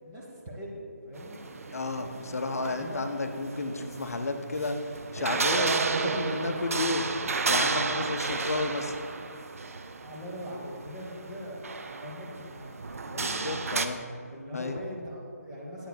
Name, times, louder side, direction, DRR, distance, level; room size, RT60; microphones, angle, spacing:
voice 1, 0.0-1.4 2.8-3.1 7.8-8.4 10.0-12.7 13.1-13.4 14.3-15.9, equal, 10° right, -4 dB, 0.7 m, -41 dB
sound 1, 1.2-13.9, right 4 dB, 60° right, 0.4 m, -32 dB
voice 2, 1.7-7.0 7.5-9.0 13.2-14.0 14.5-14.8, left 3 dB, 65° left, 6 dB, 0.5 m, -32 dB
8.1 x 7.8 x 2.2 m, 2.2 s
figure-of-eight pair, 165°, 9 cm